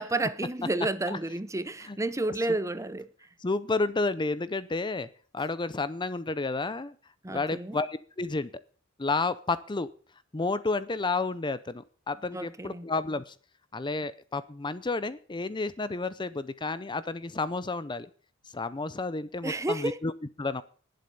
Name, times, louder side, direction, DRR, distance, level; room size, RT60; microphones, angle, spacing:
voice 1, 0.0-3.1 7.2-7.8 12.3-12.9 19.4-20.0, right 2 dB, 15° right, 0.8 m, -31 dB
voice 2, 3.4-5.1 5.3-6.9 7.3-8.5 9.0-9.9 10.3-13.3 13.7-18.1 18.5-20.1 20.4-20.6, left 3 dB, 20° left, 0.6 m, -31 dB
19.5 x 7.7 x 5.4 m
head